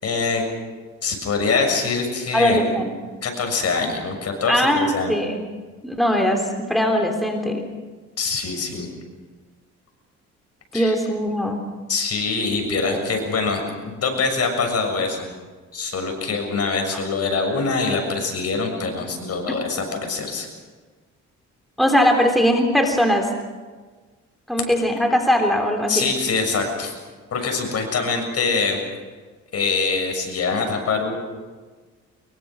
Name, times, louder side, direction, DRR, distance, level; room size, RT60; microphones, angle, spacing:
voice 1, 0.0-0.4 1.0-2.7 3.2-5.1 8.2-8.9 10.7-10.9 11.9-15.2 15.7-20.5 25.9-26.9 27.3-28.8 29.5-31.2, left 4 dB, 55° left, 3 dB, 6.9 m, -24 dB
voice 2, 2.3-2.9 4.5-5.4 5.8-7.7 10.7-11.6 12.9-13.0 21.8-23.3 24.5-26.1, equal, ahead, 3 dB, 3.3 m, -20 dB
24.5 x 22.5 x 6.3 m, 1.4 s
cardioid pair, 90°, 30 cm